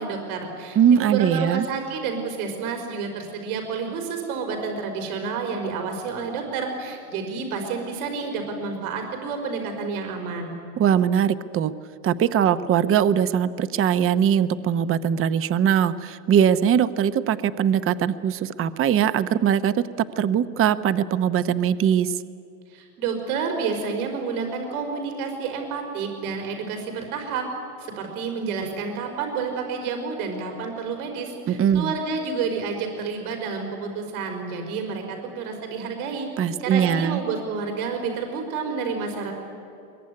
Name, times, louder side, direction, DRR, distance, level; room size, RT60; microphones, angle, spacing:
voice 1, 0.0-10.5 22.7-27.5 27.8-36.3 36.6-39.3, right 5 dB, 75° right, 4 dB, 5.0 m, -29 dB
voice 2, 0.8-1.7 10.8-11.7 12.0-19.8 20.2-22.2 31.5-31.9 36.4-37.2, right 8 dB, 30° right, 13 dB, 0.9 m, -21 dB
22.5 x 22.0 x 9.7 m, 2.6 s
supercardioid pair, 110°, 44 cm